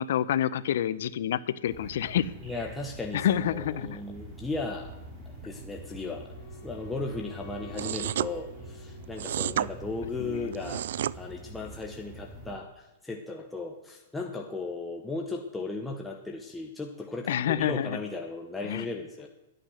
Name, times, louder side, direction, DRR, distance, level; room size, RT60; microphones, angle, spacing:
voice 1, 0.0-2.3 3.1-4.0 10.2-10.6 17.3-18.0 18.6-18.9, left 10 dB, 65° left, 16 dB, 0.6 m, -28 dB
sound 1, 1.7-12.6, right 1 dB, 25° right, 3.3 m, -45 dB
voice 2, 2.4-4.9 5.4-6.3 6.6-10.9 11.2-19.3, left 3 dB, 5° left, 1 dB, 0.9 m, -36 dB
Wind instrument woodwind instrument, 5.6-9.8, left 4 dB, 25° left, 2.8 m, -50 dB
sound 2, 7.7-8.3 9.2-9.7 10.5-11.1, right 11 dB, 70° right, 0.3 m, -30 dB
12.0 x 9.0 x 6.4 m, 0.96 s
hypercardioid pair, 155°, 0 cm